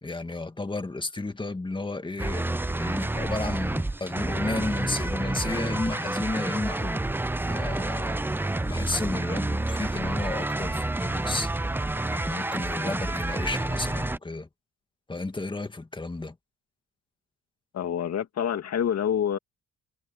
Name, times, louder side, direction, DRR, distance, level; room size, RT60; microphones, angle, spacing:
voice 1, 0.0-7.1 7.5-8.2 8.7-11.5 12.1-14.5 15.1-16.4, left 2 dB, 15° left, 2.1 m, -32 dB
sound 1, 2.2-14.2, right 2 dB, 5° right, 0.5 m, -29 dB
voice 2, 17.7-19.4, left 9 dB, 60° left, 2.0 m, -27 dB
cardioid pair, 90°, 30 cm